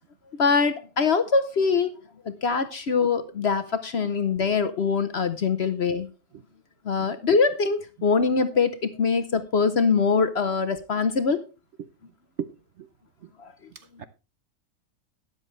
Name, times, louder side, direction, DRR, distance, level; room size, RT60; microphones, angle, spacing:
voice 1, 0.4-1.9 2.2-6.1 6.8-11.4 13.4-13.5, left 5 dB, 50° left, 0.9 m, -23 dB
voice 2, 13.7-14.0, right 7 dB, 55° right, 0.9 m, -36 dB
13.0 x 9.8 x 3.2 m
omnidirectional pair, 1.7 m